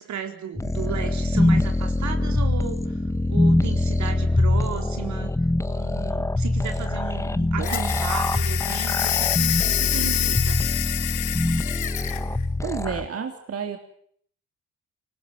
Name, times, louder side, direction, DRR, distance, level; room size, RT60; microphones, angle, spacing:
voice 1, 0.0-3.0 3.3-5.3 5.7-10.7, right 8 dB, 70° right, 5 dB, 4.1 m, -35 dB
sound 1, 0.6-13.0, left 2 dB, 10° left, 1.3 m, -24 dB
sound 2, 7.6-12.2, left 15 dB, 85° left, 1.2 m, -27 dB
voice 2, 7.6-7.9 12.6-13.8, right 6 dB, 50° right, 5 dB, 3.5 m, -31 dB
25.5 x 19.5 x 9.4 m, 0.62 s
cardioid pair, 90°, 30 cm